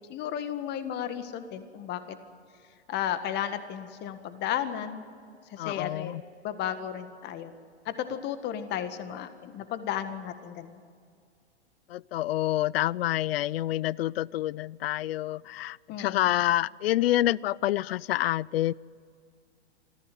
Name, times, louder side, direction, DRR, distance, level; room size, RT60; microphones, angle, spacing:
voice 1, 0.1-2.2 2.9-5.0 5.5-7.5 7.8-10.8 15.9-16.3, left 10 dB, 30° left, 10 dB, 1.7 m, -34 dB
voice 2, 5.6-6.2 11.9-18.7, left 14 dB, 60° left, 26 dB, 0.5 m, -27 dB
25.5 x 14.5 x 9.3 m, 2.2 s
hypercardioid pair, 120°, 34 cm